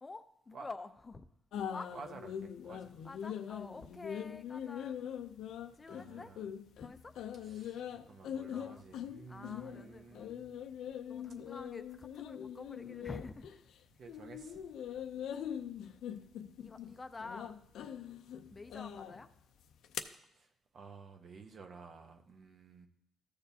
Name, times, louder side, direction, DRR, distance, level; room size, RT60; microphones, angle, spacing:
voice 1, 0.0-1.3 1.7-1.9 3.0-5.0 5.7-6.3 6.8-7.1 8.5-8.8 9.3-10.3 11.1-13.6 16.6-17.5 18.5-19.3, left 3 dB, 25° left, 0.5 m, -48 dB
sound 1, 1.5-13.8 14.1-20.0, left 9 dB, 80° left, 0.5 m, -42 dB
voice 2, 1.9-3.0 5.9-6.5 7.3-10.5 13.9-14.6 18.4-18.6 20.3-22.9, right 4 dB, 55° right, 1.0 m, -53 dB
13.5 x 6.8 x 2.7 m
cardioid pair, 90°, 0 cm